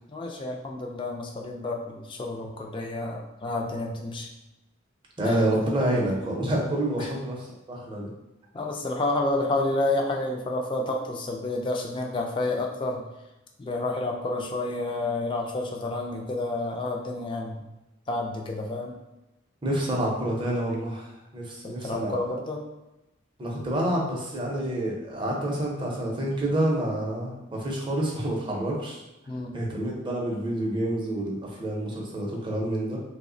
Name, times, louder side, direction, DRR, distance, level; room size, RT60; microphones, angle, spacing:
voice 1, 0.1-4.3 5.2-5.4 7.0-7.1 8.5-13.0 13.6-17.6 18.1-18.9 21.6-22.7 29.3-29.6, left 2 dB, 25° left, 1 dB, 0.3 m, -30 dB
voice 2, 5.2-8.1 19.6-22.2 23.4-29.0 29.5-33.0, right 1 dB, 25° right, -2 dB, 0.6 m, -28 dB
3.1 x 2.0 x 3.7 m, 0.96 s
head